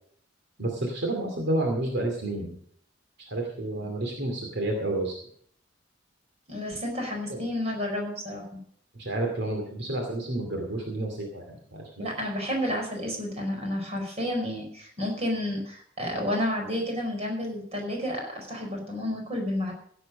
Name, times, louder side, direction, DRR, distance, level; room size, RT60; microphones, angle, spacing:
voice 1, 0.6-2.6 3.3-5.2 7.3-7.4 8.9-12.0, right 1 dB, 60° right, 2 dB, 2.4 m, -30 dB
voice 2, 6.5-8.6 12.0-19.7, left 1 dB, 35° right, 1 dB, 5.0 m, -31 dB
16.5 x 8.0 x 6.4 m, 0.63 s
head